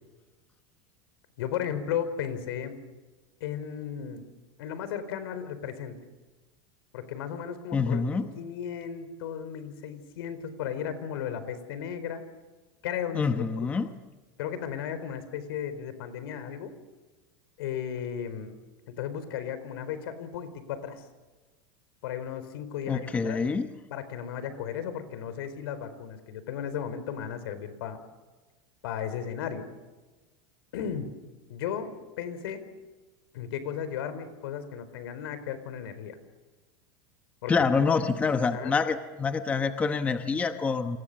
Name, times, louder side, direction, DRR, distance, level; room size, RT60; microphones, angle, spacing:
voice 1, 1.4-2.7 3.4-4.2 4.6-5.9 6.9-12.2 12.8-13.7 14.4-16.7 17.6-18.6 18.9-21.0 22.0-23.4 23.9-28.0 28.8-29.7 30.7-31.1 31.5-32.6 33.3-36.2 37.4-37.5 38.5-38.8, left 8 dB, 80° left, 12 dB, 4.5 m, -35 dB
voice 2, 7.7-8.3 13.1-13.9 22.9-23.7 37.5-41.0, left 5 dB, 10° left, 8 dB, 0.9 m, -26 dB
29.5 x 26.5 x 6.9 m, 1.2 s
supercardioid pair, 175°, 13 cm